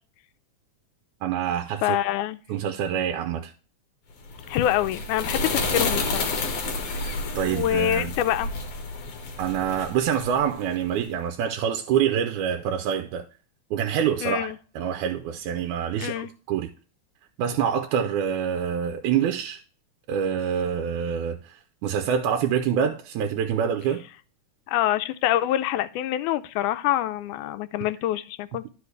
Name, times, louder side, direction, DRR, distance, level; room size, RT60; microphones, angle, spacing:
voice 1, 1.2-2.0 2.5-3.5 6.9-8.1 9.4-13.3 13.7-16.7 17.4-19.6 20.1-24.0, right 8 dB, 90° right, 2.0 m, -26 dB
voice 2, 1.8-2.4 4.5-6.3 7.5-8.5 14.2-14.6 16.0-16.3 24.7-28.7, left 12 dB, 90° left, 2.0 m, -25 dB
sound 1, 4.2-10.9, left 3 dB, 60° left, 2.0 m, -30 dB
12.0 x 5.0 x 3.2 m
omnidirectional pair, 3.4 m